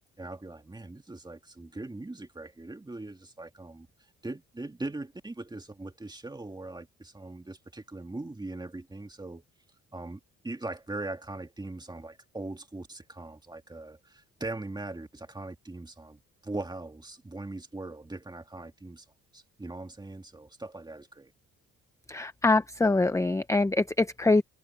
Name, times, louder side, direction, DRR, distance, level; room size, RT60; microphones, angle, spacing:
voice 1, 0.2-3.9 4.2-9.4 9.9-19.1 19.3-21.3, right 2 dB, 15° right, 2.1 m, -40 dB
voice 2, 22.1-24.4, left 2 dB, 10° left, 0.8 m, -24 dB
cardioid pair, 90°, 30 cm